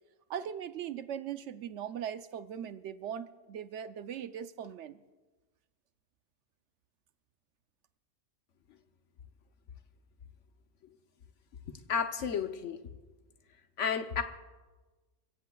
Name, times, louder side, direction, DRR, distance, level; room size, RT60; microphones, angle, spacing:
voice 1, 0.3-5.0, right 9 dB, 70° right, 12 dB, 0.9 m, -39 dB
voice 2, 11.7-12.8 13.8-14.2, left 6 dB, 75° left, 7 dB, 1.2 m, -32 dB
27.5 x 16.0 x 2.3 m, 1.3 s
omnidirectional pair, 1.3 m